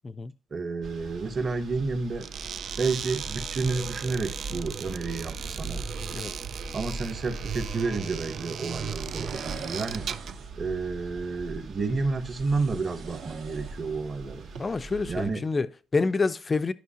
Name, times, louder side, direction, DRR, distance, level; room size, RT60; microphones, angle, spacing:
voice 1, 0.5-2.3 2.8-5.8 6.7-10.1 10.6-14.5 15.1-15.4, right 4 dB, 30° right, 0.9 m, -30 dB
sound 1, 0.8-15.3, right 3 dB, 70° right, 1.8 m, -40 dB
sound 2, 2.2-10.4, right 8 dB, 50° right, 0.3 m, -37 dB
sound 3, 9.0-10.6 12.2-14.1 14.4-14.6, right 5 dB, 85° right, 1.9 m, -44 dB
voice 2, 14.6-16.7, left 4 dB, 25° left, 0.4 m, -28 dB
12.0 x 5.6 x 2.8 m
cardioid pair, 135°, 0 cm